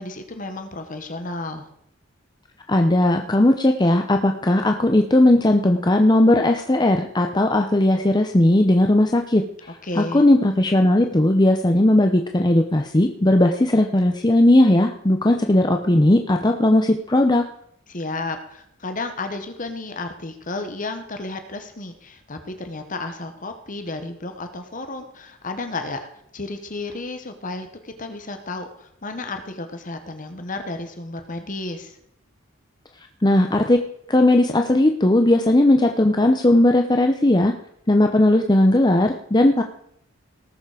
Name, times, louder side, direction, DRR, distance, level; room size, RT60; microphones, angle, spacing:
voice 1, 0.0-1.7 9.8-10.2 17.9-26.1 26.3-32.0, left 2 dB, 40° left, 7 dB, 1.3 m, -32 dB
voice 2, 2.7-9.4 10.0-17.4 33.2-33.8 34.1-37.5 37.9-39.6, left 1 dB, 20° left, 4 dB, 0.7 m, -17 dB
18.5 x 7.2 x 5.0 m, 0.72 s
head